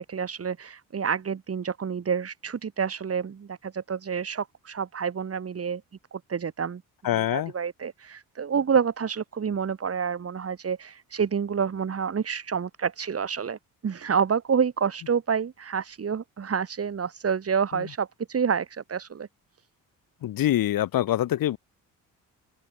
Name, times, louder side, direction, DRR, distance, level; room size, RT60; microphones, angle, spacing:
voice 1, 0.0-5.8 6.1-6.8 7.1-13.6 13.8-19.3, right 6 dB, 40° right, 5.7 m, -28 dB
voice 2, 7.0-7.5 20.2-21.6, left 13 dB, 70° left, 6.6 m, -24 dB
open air
cardioid pair, 90°, 35 cm